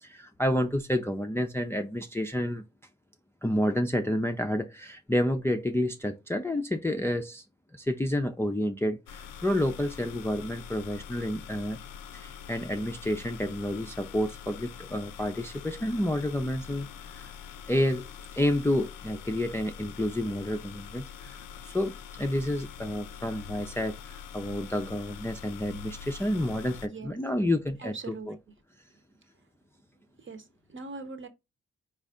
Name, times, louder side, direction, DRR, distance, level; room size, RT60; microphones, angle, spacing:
voice 1, 0.0-2.6 3.4-7.4 7.7-11.8 12.1-17.3 17.7-18.1 18.3-21.4 21.6-28.3, left 1 dB, 10° left, 0.5 m, -29 dB
sound 1, 9.1-26.9, left 8 dB, 80° left, 0.5 m, -44 dB
voice 2, 26.8-27.2 27.8-28.3 28.9-29.2 30.2-31.3, right 4 dB, 35° right, 0.9 m, -42 dB
4.0 x 2.5 x 3.5 m
supercardioid pair, 40°, 32 cm